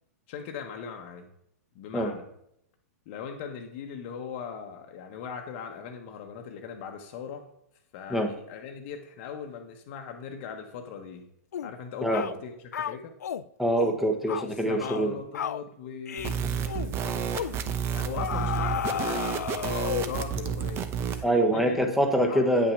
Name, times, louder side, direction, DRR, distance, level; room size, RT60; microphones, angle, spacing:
voice 1, 0.3-1.3 1.7-2.2 3.1-7.4 7.9-11.2 11.6-13.1 14.4-21.8 22.1-22.7, left 6 dB, 45° left, 3 dB, 1.1 m, -40 dB
sound 1, 11.5-11.7 12.1-12.4 12.7-13.4 13.8-14.0 14.3-14.5 14.8-15.1 15.3-15.6 16.1-16.4 16.7-16.9 17.3-17.6 18.2-20.2, left 9 dB, 80° left, 0.4 m, -33 dB
voice 2, 13.6-15.1 21.2-22.7, right 1 dB, ahead, 4 dB, 1.3 m, -24 dB
sound 2, 16.2-21.2, right 7 dB, 30° right, 0.8 m, -30 dB
8.9 x 5.8 x 5.9 m, 0.75 s
hypercardioid pair, 130°, 9 cm